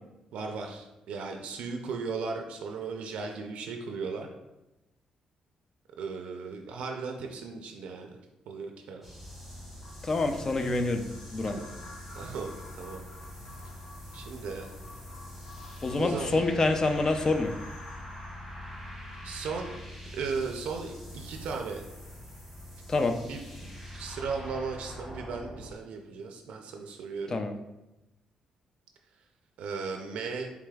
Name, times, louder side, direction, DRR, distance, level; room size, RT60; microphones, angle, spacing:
voice 1, 0.3-4.3 6.0-8.2 8.5-9.2 11.4-11.7 12.2-13.0 14.1-14.7 15.9-16.4 19.2-19.7 20.1-21.8 23.3-27.4 29.6-30.5, right 4 dB, 80° right, 3 dB, 0.4 m, -36 dB
sound 1, 9.0-25.7, equal, ahead, 1.5 m, -44 dB
sound 2, 9.8-19.8, left 3 dB, 80° left, 0.7 m, -52 dB
voice 2, 10.0-11.0 11.3-11.6 15.8-17.5 22.9-23.2 27.3-27.5, left 3 dB, 30° left, 7 dB, 0.4 m, -26 dB
4.8 x 3.4 x 2.3 m, 0.98 s
cardioid pair, 125°, 2 cm